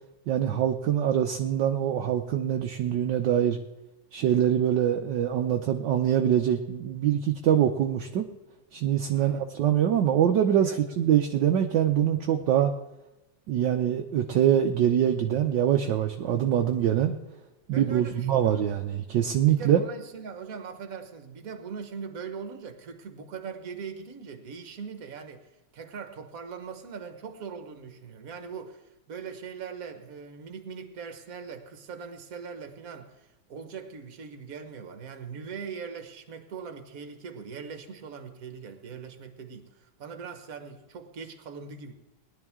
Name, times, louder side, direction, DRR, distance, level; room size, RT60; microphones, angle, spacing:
voice 1, 0.3-3.6 4.1-8.3 8.7-12.7 13.5-17.1 17.7-19.8, right 10 dB, 65° right, 4 dB, 1.3 m, -24 dB
voice 2, 9.1-9.4 10.5-11.0 17.7-18.7 19.4-41.9, right 6 dB, 45° right, 7 dB, 1.5 m, -41 dB
19.0 x 11.0 x 3.6 m, 0.98 s
omnidirectional pair, 2.3 m